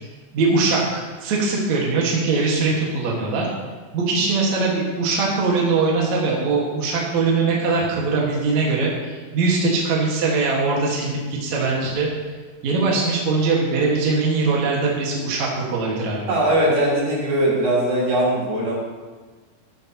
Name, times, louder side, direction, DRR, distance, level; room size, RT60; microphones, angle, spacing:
voice 1, 0.3-3.5 3.9-12.1 12.6-16.4, right 3 dB, 55° right, -3 dB, 2.9 m, -21 dB
voice 2, 16.3-18.8, right 1 dB, 90° right, -6 dB, 5.7 m, -20 dB
13.5 x 13.5 x 3.0 m, 1.4 s
omnidirectional pair, 4.1 m